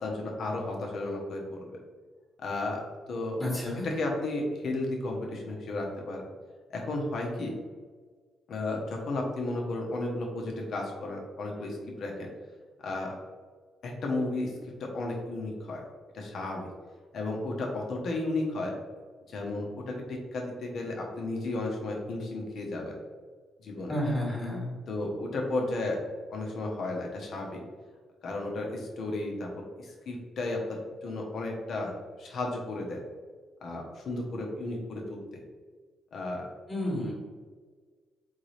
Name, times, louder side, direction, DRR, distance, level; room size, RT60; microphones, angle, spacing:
voice 1, 0.0-1.7 2.4-3.4 3.8-6.3 6.7-7.5 8.5-12.3 12.8-13.2 13.8-14.5 14.8-15.8 16.1-16.7 17.1-18.7 19.3-23.0 23.6-23.9 24.9-26.0 26.3-27.6 28.2-33.0 33.6-35.4 36.1-36.4, left 2 dB, 60° left, 0 dB, 1.1 m, -33 dB
voice 2, 3.4-3.9 23.9-24.7 36.7-37.1, left 1 dB, 20° left, -3 dB, 1.4 m, -31 dB
4.1 x 3.7 x 3.3 m, 1.5 s
cardioid pair, 90°, 0 cm